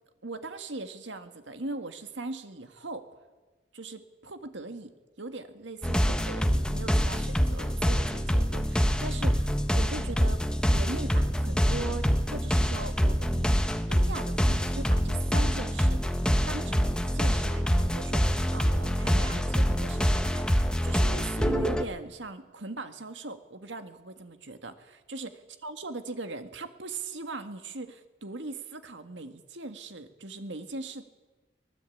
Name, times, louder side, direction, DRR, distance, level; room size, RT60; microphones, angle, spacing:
voice 1, 0.2-3.1 3.7-13.5 13.9-31.0, right 2 dB, 85° right, 8 dB, 2.0 m, -40 dB
sound 1, 5.8-21.8, equal, 5° left, 1.1 m, -25 dB
24.0 x 19.0 x 8.6 m, 1.2 s
head